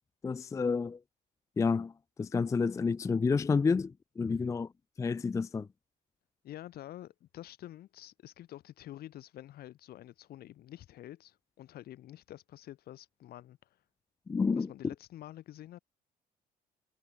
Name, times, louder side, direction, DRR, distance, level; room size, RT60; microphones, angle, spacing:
voice 1, 0.2-1.0 1.6-1.9 2.2-4.7 5.0-5.7 14.3-14.7, left 5 dB, 20° left, 0.4 m, -29 dB
voice 2, 6.4-13.7 14.5-15.8, left 13 dB, 65° left, 2.0 m, -48 dB
cardioid pair, 110°, 17 cm